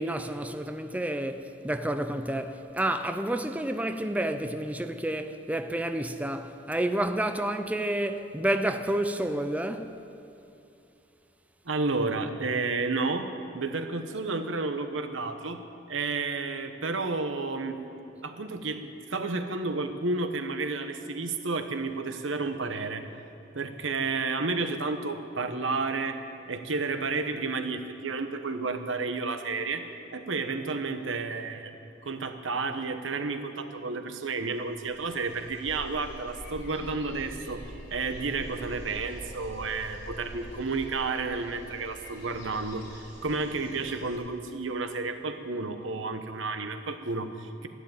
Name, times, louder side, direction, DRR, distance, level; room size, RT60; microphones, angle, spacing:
voice 1, 0.0-9.9, right 1 dB, 10° right, 0.5 m, -30 dB
voice 2, 11.7-13.3 13.5-15.6 15.9-17.8 18.2-23.1 23.5-26.2 26.5-31.8 32.0-47.7, right 3 dB, 90° right, 1.1 m, -31 dB
sound 1, 34.5-44.2, equal, 60° left, 4.6 m, -45 dB
13.0 x 11.5 x 9.0 m
head